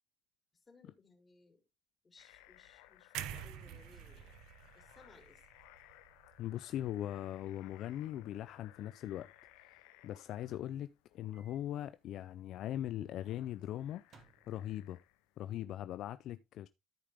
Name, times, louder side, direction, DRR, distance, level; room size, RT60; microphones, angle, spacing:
voice 1, 0.6-1.6 2.0-4.4 4.7-5.4 15.4-15.8, left 4 dB, 25° left, 3.5 m, -63 dB
sound 1, 2.2-15.5, left 16 dB, 90° left, 0.7 m, -63 dB
sound 2, 3.1-7.2 7.5-7.7, right 11 dB, 75° right, 0.8 m, -48 dB
voice 2, 6.4-9.3 10.0-14.0 14.5-15.0 15.4-16.7, left 12 dB, 60° left, 0.4 m, -40 dB
Microwave oven, 11.3-11.6 12.0-12.1 14.0-15.0, right 4 dB, 50° right, 2.8 m, -65 dB
13.0 x 5.0 x 3.6 m
cardioid pair, 110°, 0 cm